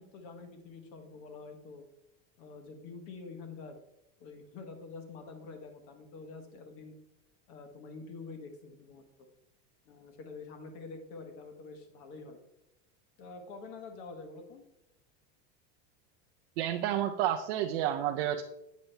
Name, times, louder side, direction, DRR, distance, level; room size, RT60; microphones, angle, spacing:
voice 1, 0.0-1.9 2.4-3.8 4.2-6.9 7.5-9.3 9.8-12.4 13.2-14.6, left 4 dB, 40° left, 6 dB, 1.2 m, -47 dB
voice 2, 16.6-18.4, right 11 dB, 60° right, 4 dB, 0.5 m, -30 dB
8.4 x 5.6 x 3.3 m, 0.87 s
supercardioid pair, 175°, 36 cm